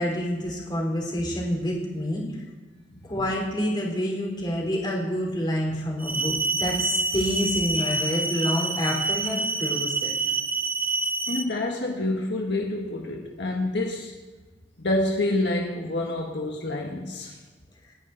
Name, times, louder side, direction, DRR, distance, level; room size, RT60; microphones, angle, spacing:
voice 1, 0.0-2.2 3.0-10.1, equal, 25° left, -1 dB, 3.7 m, -28 dB
sound 1, 6.0-11.4, right 3 dB, 10° right, 0.7 m, -27 dB
voice 2, 11.3-14.1 14.8-17.4, left 2 dB, 60° left, 0 dB, 1.6 m, -27 dB
29.5 x 10.0 x 4.0 m, 1.4 s
head